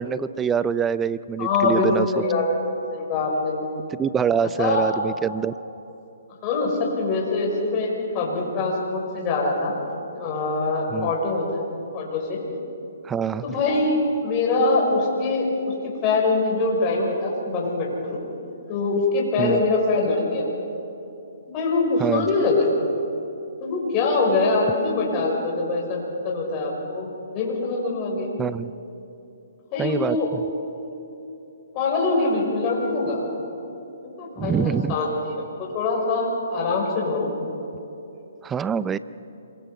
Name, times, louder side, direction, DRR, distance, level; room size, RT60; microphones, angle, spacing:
voice 1, 0.0-2.1 4.0-5.5 10.9-11.1 13.0-13.4 19.4-19.6 22.0-22.3 28.4-28.7 29.8-30.4 34.4-35.0 38.4-39.0, right 7 dB, 15° right, 16 dB, 0.5 m, -25 dB
voice 2, 1.4-1.9 2.1-2.5 2.9-3.5 4.6-4.9 6.4-9.8 10.1-11.6 11.9-12.4 13.4-14.0 14.2-15.5 16.0-18.2 18.7-20.5 21.5-22.7 23.6-28.3 29.7-30.3 31.7-33.3 34.2-37.3, left 3 dB, 30° left, -2 dB, 5.9 m, -23 dB
27.0 x 23.0 x 5.1 m, 2.8 s
hypercardioid pair, 145°, 0 cm